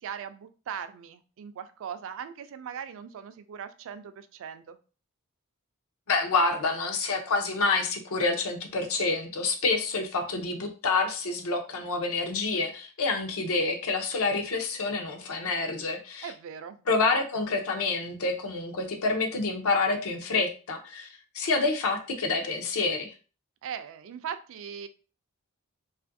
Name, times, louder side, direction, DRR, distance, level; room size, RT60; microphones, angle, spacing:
voice 1, 0.0-4.8 16.2-16.8 23.6-24.9, right 8 dB, 60° right, 11 dB, 0.3 m, -39 dB
voice 2, 6.1-16.3 16.9-21.1 21.3-23.1, left 3 dB, 70° left, 4 dB, 0.6 m, -28 dB
2.6 x 2.4 x 2.5 m, 0.36 s
head